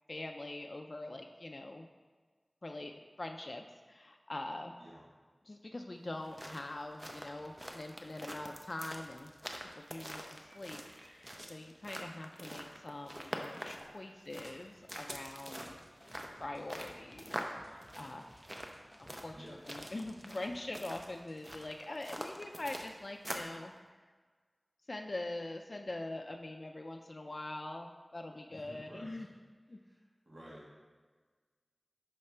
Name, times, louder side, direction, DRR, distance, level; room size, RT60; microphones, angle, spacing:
voice 1, 0.1-1.9 2.6-4.7 5.5-9.3 9.7-15.8 16.4-18.3 19.0-23.7 24.9-29.3 29.7-29.8, left 2 dB, 55° left, 3 dB, 0.3 m, -43 dB
sound 1, 6.1-23.6, equal, 20° right, 0.6 m, -45 dB
sound 2, 15.1-20.7 20.9-21.6, left 1 dB, 25° left, 1.5 m, -61 dB
voice 2, 16.3-16.7 19.3-19.6 28.5-29.3 29.7-30.7, equal, 60° right, -7 dB, 1.8 m, -53 dB
5.7 x 5.5 x 3.2 m, 1.4 s
wide cardioid pair, 50°, 0 cm